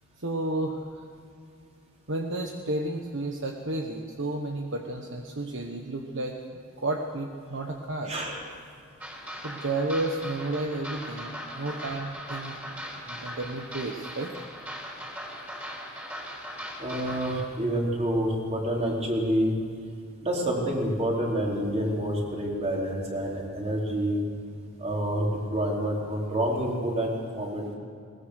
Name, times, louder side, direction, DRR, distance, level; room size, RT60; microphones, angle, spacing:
voice 1, 0.2-1.0 2.1-6.4 6.8-8.1 9.4-12.6 13.0-14.3 24.1-24.2, right 2 dB, 60° right, 2 dB, 1.4 m, -32 dB
voice 2, 8.1-8.4 16.8-19.6 20.2-24.2 24.8-27.8, right 1 dB, 30° right, -2 dB, 4.2 m, -28 dB
sound 1, 9.0-17.4, equal, 10° right, 4.1 m, -39 dB
21.5 x 19.0 x 6.6 m, 2.3 s
head